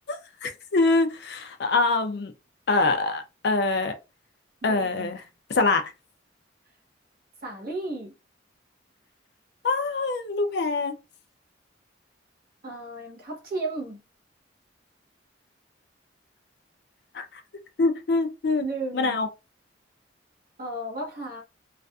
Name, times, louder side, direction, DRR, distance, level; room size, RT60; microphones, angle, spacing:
voice 1, 0.4-2.3 2.7-3.9 4.6-5.2 5.5-5.8 9.6-11.0 17.1-17.4 17.8-18.6 18.9-19.3, left 3 dB, 60° left, 0.4 m, -24 dB
voice 2, 4.6-5.2 7.4-8.1 12.6-14.0 18.6-19.2 20.6-21.4, right 2 dB, 50° right, 1.1 m, -34 dB
2.4 x 2.4 x 2.3 m
head